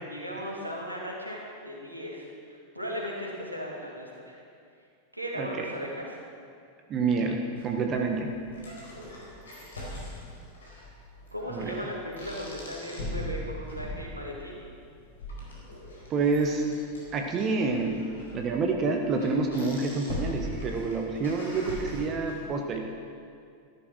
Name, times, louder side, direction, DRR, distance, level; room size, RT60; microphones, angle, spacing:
voice 1, 0.0-4.4 5.1-6.2 11.3-14.7, equal, 85° right, -2 dB, 2.8 m, -37 dB
voice 2, 5.4-5.7 6.9-8.4 11.5-11.8 16.1-16.7 17.1-22.9, right 4 dB, 30° right, 3 dB, 1.3 m, -28 dB
sound 1, 7.6-22.6, left 1 dB, 70° left, 4.4 m, -41 dB
14.0 x 12.5 x 6.2 m, 2.4 s
figure-of-eight pair, 90°, 0 cm